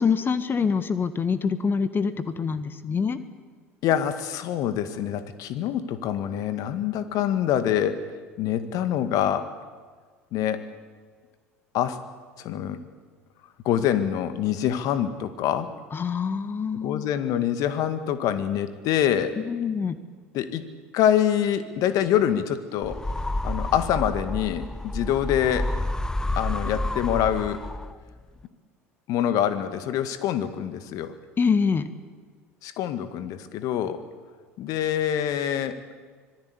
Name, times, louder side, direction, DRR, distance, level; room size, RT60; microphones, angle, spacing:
voice 1, 0.0-3.2 15.9-17.1 19.4-20.0 31.4-31.9, left 5 dB, 30° left, 12 dB, 1.5 m, -25 dB
voice 2, 3.8-8.0 8.4-9.5 10.3-10.7 11.7-12.0 12.4-12.8 13.6-15.7 16.7-19.4 20.3-20.7 20.9-23.0 23.4-25.7 26.4-27.6 29.1-31.1 32.6-34.0 34.6-35.8, left 10 dB, 55° left, 10 dB, 2.0 m, -25 dB
sound 1, 22.8-28.1, left 1 dB, 10° left, 0.8 m, -30 dB
25.5 x 19.5 x 8.3 m, 1.5 s
figure-of-eight pair, 70°, 7 cm